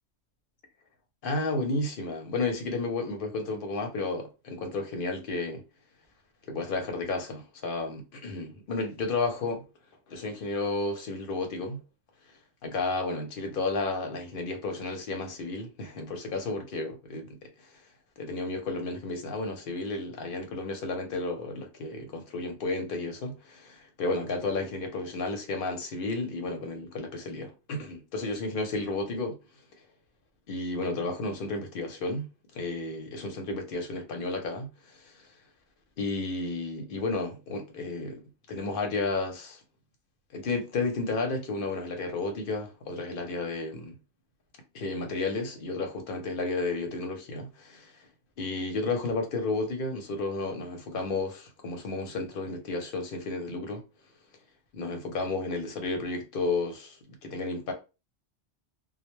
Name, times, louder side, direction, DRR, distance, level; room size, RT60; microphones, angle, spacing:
voice 1, 1.2-5.6 6.5-9.6 10.1-11.8 12.6-17.4 18.2-29.4 30.5-32.3 32.5-35.1 36.0-38.2 38.5-39.6 40.3-44.0 44.7-47.9 48.4-53.8 54.7-57.7, left 3 dB, 55° left, 0.8 m, -32 dB
2.1 x 2.1 x 3.0 m
omnidirectional pair, 1.2 m